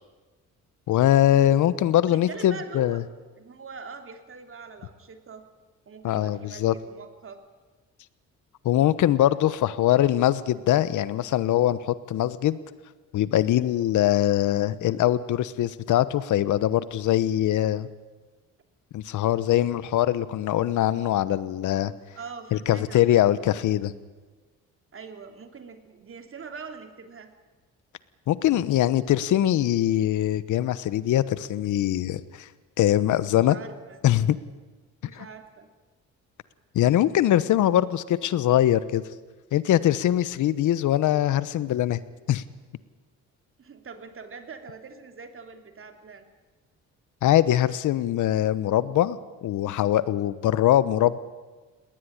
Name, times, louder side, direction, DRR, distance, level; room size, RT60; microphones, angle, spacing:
voice 1, 0.9-3.0 6.0-6.7 8.6-12.6 13.1-17.9 18.9-21.9 22.5-23.9 28.3-32.5 32.8-33.6 34.0-34.4 35.1-35.2 36.7-39.0 39.5-42.0 42.3-42.4 47.2-51.2, left 12 dB, 75° left, 16 dB, 1.1 m, -22 dB
voice 2, 2.1-3.1 3.4-5.4 5.9-7.4 22.2-23.3 24.9-27.3 33.4-34.0 35.0-35.7 43.6-46.3, right 5 dB, 45° right, 6 dB, 3.0 m, -43 dB
19.5 x 19.0 x 10.0 m, 1.3 s
cardioid pair, 90°, 30 cm